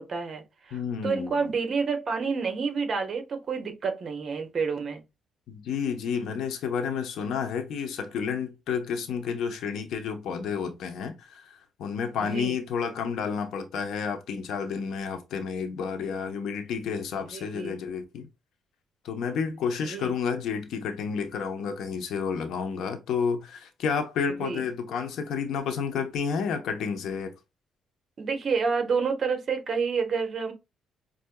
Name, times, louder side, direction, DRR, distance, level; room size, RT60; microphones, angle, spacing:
voice 1, 0.0-5.0 12.2-12.6 17.3-17.8 19.8-20.1 24.4-24.6 28.2-30.5, right 5 dB, 45° right, 1.1 m, -29 dB
voice 2, 0.7-1.5 5.5-18.3 19.0-27.3, left 6 dB, 75° left, 0.8 m, -30 dB
5.4 x 2.6 x 2.2 m
cardioid pair, 120°, 0 cm